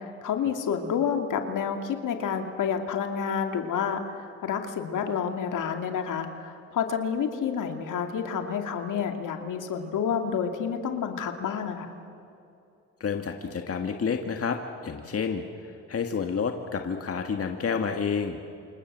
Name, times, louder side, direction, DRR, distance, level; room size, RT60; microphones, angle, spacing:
voice 1, 0.0-11.9, left 7 dB, 70° left, 5 dB, 2.6 m, -29 dB
voice 2, 13.0-15.4 15.9-18.4, left 6 dB, 45° left, 5 dB, 1.9 m, -29 dB
28.5 x 27.0 x 7.6 m, 2.7 s
cardioid pair, 70°, 32 cm